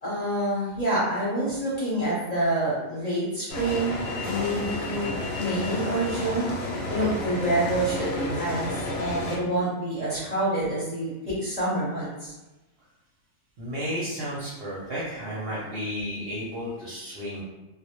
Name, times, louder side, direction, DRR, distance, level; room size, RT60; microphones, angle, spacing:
voice 1, 0.0-6.5 6.9-12.3, right 1 dB, 35° left, -9 dB, 0.7 m, -27 dB
sound 1, 3.5-9.4, left 2 dB, 80° left, 1.0 m, -31 dB
voice 2, 13.6-17.4, equal, 60° right, -7 dB, 0.7 m, -33 dB
2.1 x 2.1 x 2.8 m, 1.0 s
omnidirectional pair, 1.4 m